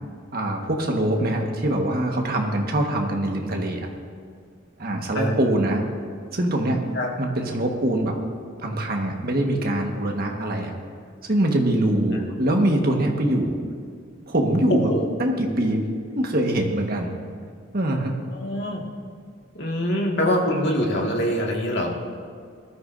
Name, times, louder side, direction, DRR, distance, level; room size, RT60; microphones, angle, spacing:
voice 1, 0.3-3.9 4.8-5.8 6.3-6.8 7.2-8.2 8.6-10.7 11.2-13.6 14.3-14.9 15.2-17.1 17.7-18.1, right 1 dB, 50° right, 2 dB, 1.5 m, -23 dB
voice 2, 18.3-18.8 19.6-21.9, equal, 60° left, -1 dB, 1.9 m, -24 dB
20.0 x 13.0 x 2.6 m, 2.2 s
head